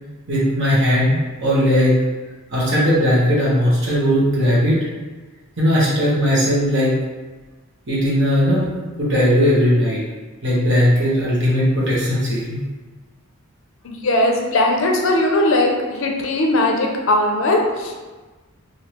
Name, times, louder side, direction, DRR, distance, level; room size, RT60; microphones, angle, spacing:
voice 1, 0.3-2.0 2.5-4.8 5.6-7.0 7.9-8.7 9.0-10.0 10.4-12.6, equal, 55° right, -7 dB, 1.1 m, -17 dB
voice 2, 13.8-17.9, left 1 dB, 60° left, 1 dB, 0.5 m, -19 dB
3.2 x 2.6 x 2.9 m, 1.3 s
head